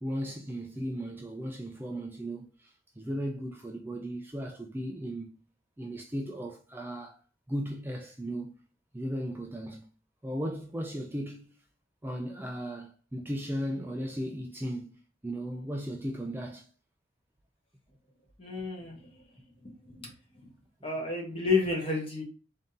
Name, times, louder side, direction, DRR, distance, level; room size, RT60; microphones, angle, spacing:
voice 1, 0.0-5.3 5.8-7.2 7.5-8.6 8.9-9.9 10.2-11.6 12.0-16.7, equal, 10° right, 0.4 m, -36 dB
voice 2, 18.4-19.1 20.0-20.5 20.8-22.2, left 4 dB, 30° left, 1.3 m, -31 dB
3.8 x 2.7 x 3.7 m
head